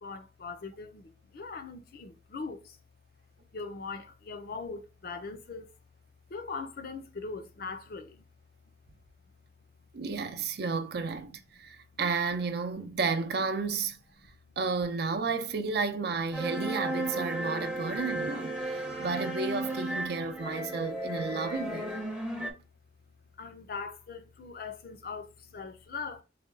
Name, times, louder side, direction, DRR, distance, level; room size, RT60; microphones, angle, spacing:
voice 1, 0.0-2.8 3.5-5.7 6.3-8.3 8.7-8.8 11.6-12.0 14.2-14.5 20.4-20.5 22.3-22.4 23.4-26.2, left 4 dB, 55° left, 0.5 m, -41 dB
voice 2, 9.9-14.0 14.6-21.9, right 4 dB, 65° right, 0.5 m, -32 dB
sound 1, 16.3-22.5, right 1 dB, 5° right, 0.6 m, -34 dB
4.1 x 2.2 x 3.7 m
head